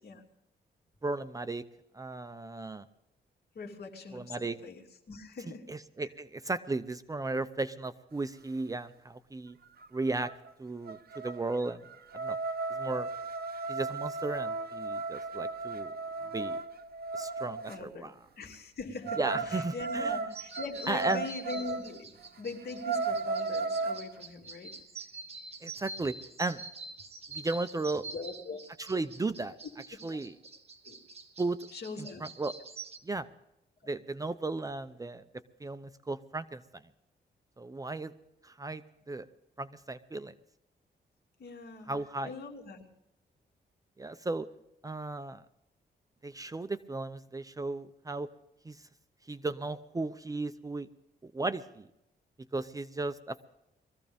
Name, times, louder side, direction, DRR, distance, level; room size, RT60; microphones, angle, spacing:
voice 1, 1.0-1.6 1.9-2.8 4.1-4.6 5.7-9.6 9.9-10.3 10.6-11.8 12.1-12.4 12.7-13.1 13.7-15.9 16.3-16.6 17.1-18.1 19.2-20.2 20.9-21.2 25.6-26.6 27.3-28.0 28.9-29.5 30.0-30.3 31.4-31.6 32.2-32.5 33.0-33.3 33.9-35.2 35.6-36.8 37.6-38.1 38.4-39.3 39.6-40.3 41.9-42.3 44.0-44.5 44.8-45.4 46.2-48.3 48.6-48.8 49.3-50.9 51.2-51.9 52.5-53.5, right 2 dB, 20° right, 11 dB, 0.6 m, -35 dB
voice 2, 3.5-4.8 5.1-5.7 6.0-6.1 17.7-18.1 18.4-24.7 28.1-28.6 30.0-30.2 30.8-31.0 31.7-32.2 41.4-41.9 42.2-42.9, left 4 dB, 65° left, 2 dB, 2.7 m, -42 dB
sound 1, 9.8-9.9 10.2-10.5 10.9-17.8 19.0-21.9 22.3-22.4 22.7-24.1, right 4 dB, 60° right, 0.9 m, -35 dB
sound 2, 20.3-33.0, right 3 dB, 35° right, 1.6 m, -46 dB
21.5 x 15.0 x 3.5 m, 0.86 s
wide cardioid pair, 125°, 18 cm